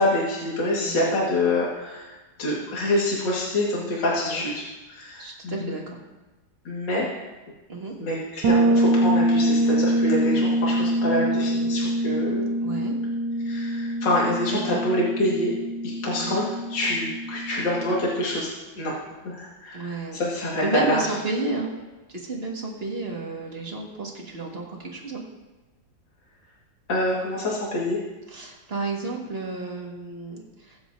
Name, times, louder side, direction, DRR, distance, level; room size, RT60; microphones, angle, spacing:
voice 1, 0.0-5.8 6.6-7.1 8.0-12.5 13.5-15.5 15.8-18.5 18.8-18.9 19.2-21.0 26.9-28.0, left 1 dB, 75° left, -5 dB, 2.5 m, -26 dB
voice 2, 5.2-6.0 7.7-8.0 12.6-13.0 14.5-14.8 16.1-16.4 19.7-21.7 22.1-25.2 28.3-30.8, right 3 dB, 35° right, -1 dB, 1.9 m, -32 dB
Bass guitar, 8.4-18.1, right 1 dB, 85° right, 1.5 m, -24 dB
22.0 x 7.6 x 2.7 m, 1.1 s
omnidirectional pair, 2.0 m